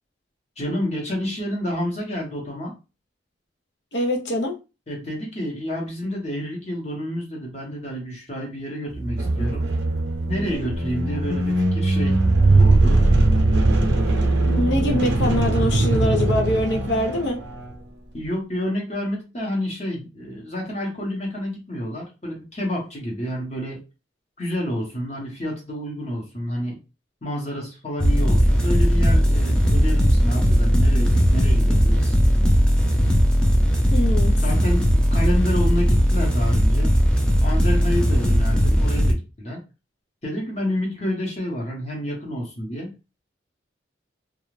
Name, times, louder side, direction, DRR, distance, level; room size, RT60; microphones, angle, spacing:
voice 1, 0.6-2.7 4.9-9.7 10.3-12.2 12.5-13.0 18.1-23.8 24.4-26.8 27.2-32.2 34.4-36.9 37.4-39.6 40.2-42.9, equal, 35° left, 0.9 m, -29 dB
voice 2, 3.9-4.6 14.4-17.4 33.9-34.4, left 1 dB, 70° left, 0.7 m, -24 dB
sound 1, 8.9-17.7, right 2 dB, 75° right, 0.6 m, -20 dB
sound 2, 28.0-39.1, equal, 5° left, 0.4 m, -18 dB
2.4 x 2.3 x 3.1 m
head